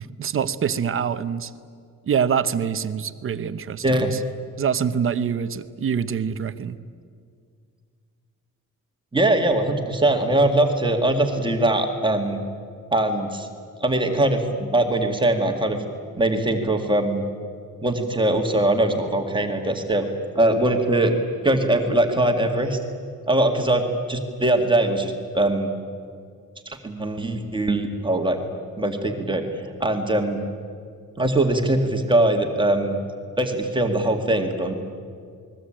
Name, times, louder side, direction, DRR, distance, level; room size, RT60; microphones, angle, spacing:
voice 1, 0.0-1.5 2.1-4.2 4.6-6.8, right 7 dB, 40° right, 12 dB, 0.9 m, -25 dB
voice 2, 9.1-12.4 12.9-13.5 13.8-15.8 16.2-17.2 17.8-20.1 20.3-21.1 21.4-22.8 23.3-25.7 26.7-28.4 28.8-29.4 29.8-30.4 31.2-33.0 33.4-34.7, right 1 dB, 15° right, 3 dB, 2.1 m, -21 dB
29.0 x 21.0 x 8.9 m, 2.2 s
wide cardioid pair, 175°, 32 cm